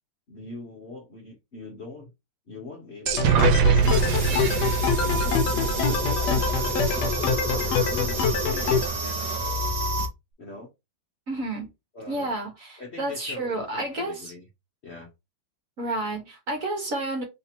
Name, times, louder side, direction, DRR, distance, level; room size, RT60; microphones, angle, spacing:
voice 1, 0.3-2.1 2.5-3.6 5.0-9.6 10.4-10.7 11.9-12.4 12.8-14.5 14.8-15.1, left 3 dB, 45° left, 0.9 m, -42 dB
sound 1, 3.1-8.9, left 5 dB, 70° left, 1.1 m, -25 dB
sound 2, 3.1-6.7, right 7 dB, 80° right, 1.4 m, -24 dB
sound 3, 3.8-10.1, right 1 dB, 30° right, 0.8 m, -29 dB
voice 2, 11.3-11.7 12.1-14.3 15.8-17.2, right 2 dB, 50° right, 1.3 m, -30 dB
3.4 x 2.7 x 4.3 m
omnidirectional pair, 2.2 m